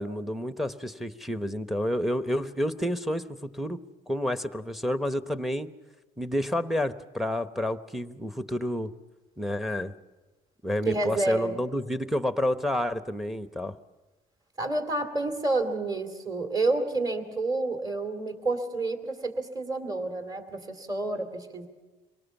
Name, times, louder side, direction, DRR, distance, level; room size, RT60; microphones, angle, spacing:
voice 1, 0.0-5.7 6.2-8.9 9.4-9.9 10.6-13.7, left 1 dB, ahead, 10 dB, 0.9 m, -30 dB
voice 2, 10.8-11.6 14.6-21.7, right 2 dB, 25° right, 7 dB, 2.6 m, -29 dB
24.5 x 18.5 x 7.2 m, 1.2 s
cardioid pair, 110°, 17 cm